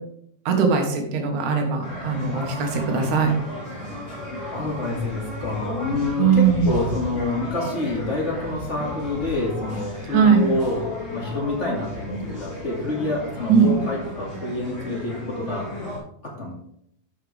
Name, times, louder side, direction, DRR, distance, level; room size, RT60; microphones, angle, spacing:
voice 1, 0.5-3.3 6.2-6.8 10.1-10.5 13.5-13.7, right 6 dB, 75° right, 3 dB, 2.9 m, -20 dB
sound 1, 1.8-16.0, left 1 dB, 55° left, 5.0 m, -34 dB
voice 2, 4.2-15.7 16.2-16.5, left 2 dB, 25° left, -3 dB, 2.3 m, -27 dB
13.0 x 5.6 x 3.5 m, 0.71 s
omnidirectional pair, 3.5 m